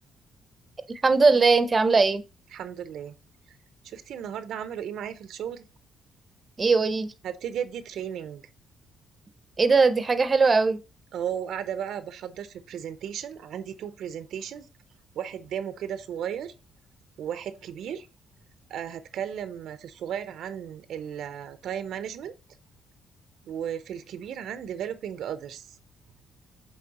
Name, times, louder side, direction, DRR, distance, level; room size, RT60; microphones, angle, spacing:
voice 1, 0.9-2.2 6.6-7.1 9.6-10.8, right 4 dB, 30° right, 0.6 m, -20 dB
voice 2, 2.5-3.1 3.8-5.6 7.2-8.5 11.1-14.7 15.2-16.5 17.2-18.1 18.7-22.3 23.5-25.8, right 9 dB, 75° right, 0.6 m, -35 dB
7.9 x 3.3 x 4.0 m
cardioid pair, 90°, 0 cm